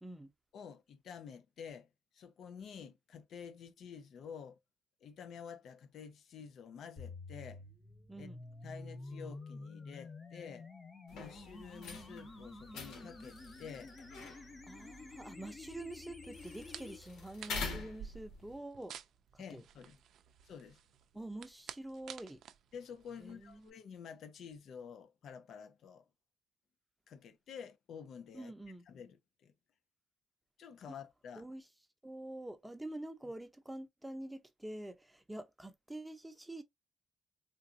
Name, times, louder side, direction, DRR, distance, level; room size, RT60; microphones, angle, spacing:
voice 1, 0.0-0.3 8.1-8.4 14.7-19.0 19.3-19.6 21.1-22.4 23.2-23.7 28.3-28.8 30.9-31.0 31.4-31.6 32.0-36.6, right 1 dB, 10° right, 0.7 m, -46 dB
voice 2, 0.5-1.9 2.1-4.6 5.0-7.6 8.2-8.3 8.6-10.7 11.1-13.9 19.4-20.0 20.4-20.8 22.7-26.0 27.1-28.5 28.9-29.2 29.4-29.5 30.6-31.5, left 7 dB, 70° left, 0.5 m, -50 dB
sound 1, 7.0-17.0, left 3 dB, 25° left, 1.1 m, -50 dB
sound 2, 11.1-18.6, left 3 dB, 85° left, 1.6 m, -47 dB
sound 3, 16.4-23.7, right 8 dB, 70° right, 0.4 m, -53 dB
3.9 x 2.5 x 2.6 m
cardioid pair, 90°, 0 cm